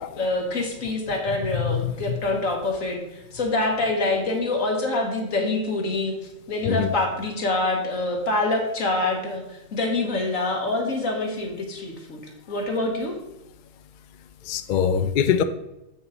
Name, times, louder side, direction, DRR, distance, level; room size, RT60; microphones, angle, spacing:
voice 1, 0.2-6.1 6.5-12.2 12.5-13.2, left 2 dB, 80° left, 1.8 m, -25 dB
voice 2, 1.5-2.2 6.7-6.9 14.5-15.4, left 8 dB, 60° left, 0.5 m, -23 dB
7.6 x 6.2 x 4.0 m
omnidirectional pair, 1.4 m